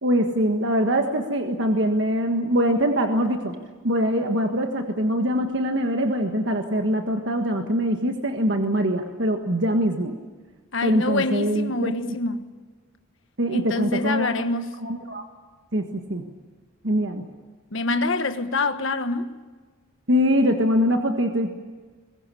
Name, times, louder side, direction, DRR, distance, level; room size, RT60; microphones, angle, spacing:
voice 1, 0.0-3.6 3.8-10.2 10.8-11.9 13.4-14.3 14.8-15.2 15.7-16.3 16.8-17.2 20.1-21.5, equal, 55° right, 1.6 m, -23 dB
voice 2, 10.7-12.5 13.5-14.7 17.7-19.3, left 2 dB, 65° left, 1.4 m, -26 dB
22.5 x 21.5 x 8.5 m
head